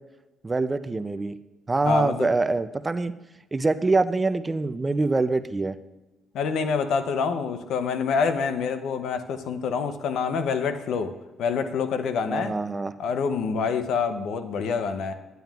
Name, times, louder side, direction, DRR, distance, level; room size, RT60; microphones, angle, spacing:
voice 1, 0.4-1.4 1.7-3.1 3.5-5.8 12.3-12.9, right 3 dB, 25° right, 13 dB, 0.4 m, -24 dB
voice 2, 1.9-2.3 6.3-11.1 11.4-12.5 13.0-15.1, left 5 dB, 80° left, 10 dB, 0.6 m, -26 dB
10.5 x 9.2 x 2.3 m, 1.1 s
cardioid pair, 90°, 0 cm